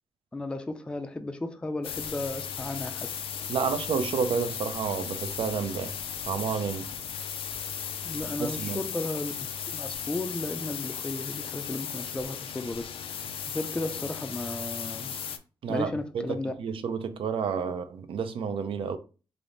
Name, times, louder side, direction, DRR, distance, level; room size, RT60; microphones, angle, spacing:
voice 1, 0.3-3.1 8.0-9.3 9.7-15.2 15.7-16.5, left 2 dB, 10° left, 0.3 m, -34 dB
sound 1, 1.8-15.4, left 8 dB, 90° left, 0.4 m, -36 dB
voice 2, 3.5-5.9 6.3-6.9 8.4-8.8 15.6-19.0, right 6 dB, 75° right, 0.5 m, -30 dB
3.4 x 2.5 x 3.8 m
wide cardioid pair, 145°, 9 cm